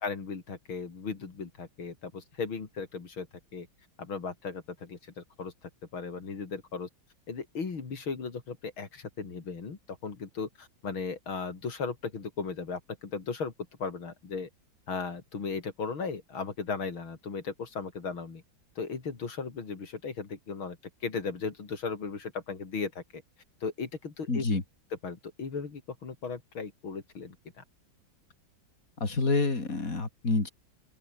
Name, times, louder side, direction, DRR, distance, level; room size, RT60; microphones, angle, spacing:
voice 1, 0.0-3.3 3.5-3.7 4.0-5.5 5.9-6.9 7.3-13.5 13.8-14.5 14.9-18.4 18.8-20.8 21.0-23.2 23.6-24.5 25.0-27.6, left 5 dB, 85° left, 4.1 m, -36 dB
voice 2, 24.3-24.6 29.0-30.5, left 3 dB, 40° left, 4.4 m, -27 dB
open air
omnidirectional pair, 2.2 m